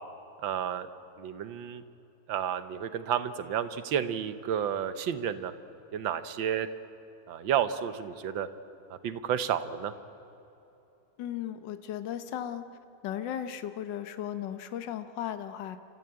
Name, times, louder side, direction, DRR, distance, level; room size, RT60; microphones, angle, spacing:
voice 1, 0.4-0.9 1.2-1.8 2.3-5.5 5.9-6.7 7.3-8.5 8.9-9.9, right 9 dB, 75° right, 12 dB, 1.7 m, -31 dB
voice 2, 11.2-12.7 13.0-15.8, left 10 dB, 70° left, 10 dB, 1.6 m, -36 dB
29.5 x 14.0 x 8.8 m, 2.9 s
omnidirectional pair, 2.1 m